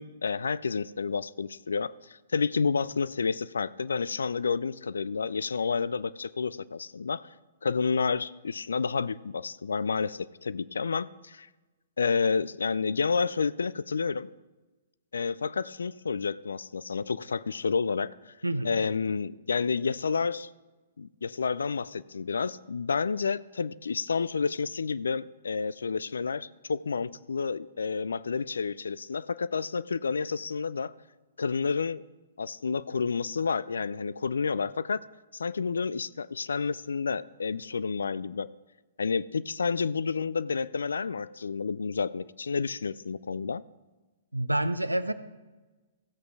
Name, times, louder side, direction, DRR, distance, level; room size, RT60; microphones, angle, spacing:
voice 1, 0.0-7.2 7.6-11.5 12.0-14.3 15.1-18.3 18.6-20.5 21.0-30.9 31.4-32.0 32.4-35.0 35.3-38.5 39.0-43.6, left 5 dB, 70° left, 18 dB, 0.3 m, -30 dB
voice 2, 44.3-45.1, right 1 dB, 90° right, 13 dB, 0.6 m, -28 dB
16.0 x 7.7 x 3.4 m, 1.2 s
figure-of-eight pair, 115°, 0 cm